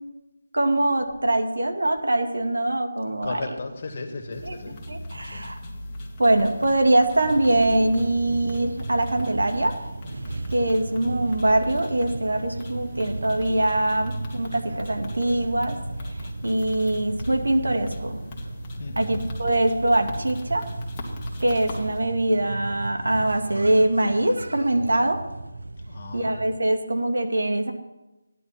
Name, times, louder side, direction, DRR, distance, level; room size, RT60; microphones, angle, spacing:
voice 1, 0.5-3.4 4.5-4.6 4.9-5.6 6.2-9.7 10.5-15.8 16.4-18.2 19.0-20.6 21.4-25.2 26.1-27.7, right 1 dB, 85° right, 4 dB, 2.2 m, -23 dB
voice 2, 3.2-4.8 5.1-5.5 18.8-19.2 25.9-26.4, left 3 dB, 35° left, 3 dB, 1.9 m, -36 dB
sound 1, 4.3-22.0, left 1 dB, 15° left, 1.6 m, -39 dB
sound 2, 7.2-26.6, right 2 dB, 70° right, 0.8 m, -36 dB
16.0 x 11.0 x 4.3 m, 1.0 s
figure-of-eight pair, 170°, 0 cm